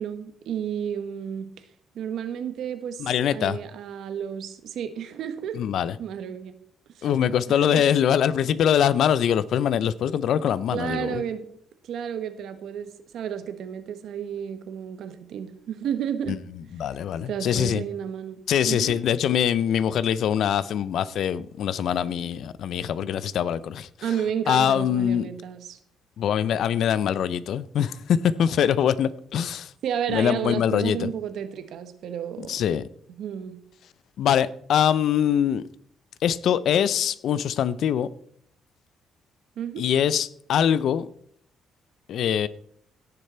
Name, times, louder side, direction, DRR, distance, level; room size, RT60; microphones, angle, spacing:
voice 1, 0.0-1.6 1.9-5.6 6.0-6.6 7.0-7.1 7.5-7.8 10.7-11.5 11.8-16.4 17.2-19.0 24.0-25.8 29.8-32.6 33.2-33.6 39.6-39.9, right 8 dB, 70° right, 1.3 m, -32 dB
voice 2, 3.0-3.6 5.5-6.0 7.0-11.2 16.3-16.4 16.8-17.8 18.5-23.9 24.5-25.3 26.2-29.7 30.1-31.1 32.5-32.8 34.2-35.6 36.2-38.1 39.8-41.1 42.1-42.5, left 9 dB, 70° left, 0.5 m, -23 dB
17.0 x 6.7 x 4.4 m
cardioid pair, 100°, 0 cm